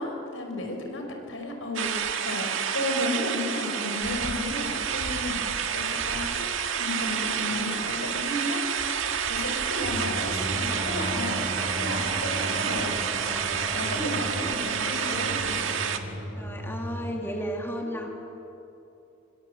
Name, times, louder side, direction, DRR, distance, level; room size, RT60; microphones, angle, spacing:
voice 1, 0.0-5.4 5.7-8.7 9.3-13.0 13.7-15.7 17.8-18.1, left 1 dB, 75° left, 3 dB, 5.3 m, -33 dB
sound 1, 1.7-16.0, right 7 dB, 75° right, 1.8 m, -29 dB
sound 2, 9.8-17.1, equal, 50° right, 4.9 m, -37 dB
sound 3, 10.5-15.6, right 3 dB, 20° right, 1.0 m, -39 dB
voice 2, 16.4-18.1, equal, 10° left, 0 dB, 2.5 m, -33 dB
26.5 x 25.5 x 7.9 m, 2.8 s
head